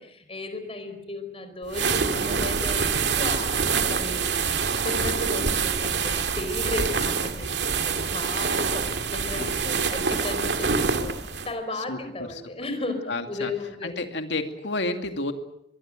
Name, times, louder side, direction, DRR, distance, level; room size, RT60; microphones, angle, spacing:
voice 1, 0.0-2.9 3.1-3.5 3.9-4.5 4.8-11.1 11.5-13.0 13.3-13.9, left 2 dB, 35° left, 8 dB, 4.8 m, -34 dB
sound 1, 1.7-11.5, right 5 dB, 70° right, 2.2 m, -26 dB
voice 2, 9.4-10.0 11.7-12.0 12.3-12.4 13.1-13.5 13.8-15.3, left 2 dB, 75° left, 6 dB, 2.4 m, -31 dB
24.0 x 22.0 x 7.7 m, 0.80 s
head